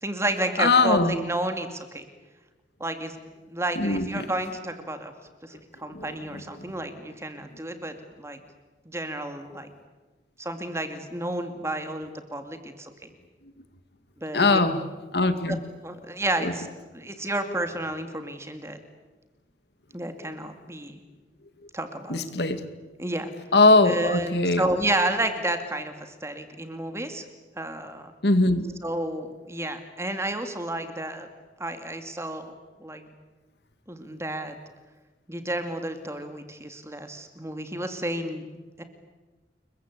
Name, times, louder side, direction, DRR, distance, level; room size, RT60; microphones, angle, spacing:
voice 1, 0.0-2.0 2.8-3.2 3.5-5.1 5.4-8.4 8.9-9.7 10.4-13.1 14.2-14.6 15.5-15.6 15.8-16.7 16.9-18.8 19.9-21.0 21.7-22.2 23.0-23.3 23.8-27.2 27.6-28.1 28.8-31.3 31.6-33.1 33.9-34.5 35.3-38.8, right 1 dB, 15° right, 7 dB, 2.4 m, -31 dB
voice 2, 0.6-1.2 3.8-4.3 5.9-6.1 14.3-14.8 15.1-15.6 16.4-16.5 22.1-22.6 23.5-24.6 28.2-28.7, left 3 dB, 60° left, 10 dB, 2.1 m, -21 dB
29.5 x 22.5 x 8.4 m, 1.2 s
head